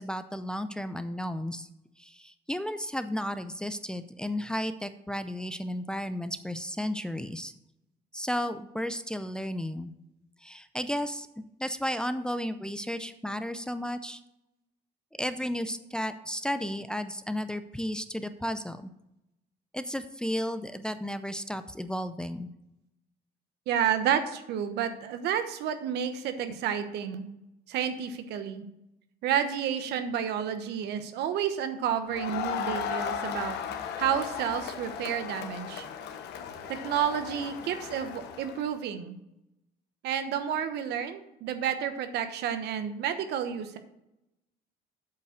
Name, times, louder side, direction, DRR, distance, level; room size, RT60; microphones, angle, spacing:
voice 1, 0.0-1.7 2.0-7.5 8.1-9.9 10.4-11.3 11.6-14.2 15.2-18.9 19.7-22.5, equal, 5° left, 10 dB, 0.5 m, -33 dB
voice 2, 23.7-27.3 27.7-28.7 29.2-33.6 34.0-35.8 36.7-39.2 40.0-43.8, right 8 dB, 80° right, 9 dB, 1.1 m, -30 dB
Crowd, 32.1-38.7, left 7 dB, 80° left, 1.1 m, -36 dB
8.3 x 5.3 x 6.5 m, 0.86 s
cardioid pair, 110°, 17 cm